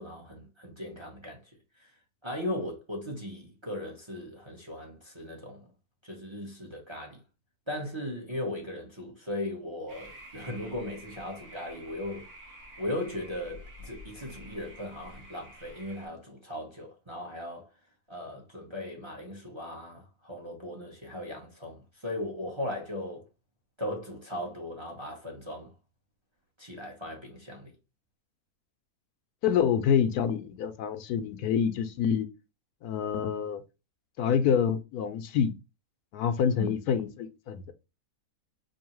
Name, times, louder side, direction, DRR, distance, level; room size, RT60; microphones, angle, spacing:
voice 1, 0.0-1.4 1.8-1.9 2.2-5.7 6.0-7.2 7.7-12.2 12.8-17.7 18.1-23.2 23.8-25.7 26.6-27.7 36.6-36.7, left 1 dB, 25° right, 0.8 m, -38 dB
sound 1, 9.9-16.1, equal, 75° right, 2.1 m, -49 dB
voice 2, 29.4-32.3 32.8-33.6 34.2-35.5 36.1-37.7, left 7 dB, 80° left, 1.1 m, -27 dB
4.6 x 2.8 x 3.0 m
omnidirectional pair, 1.6 m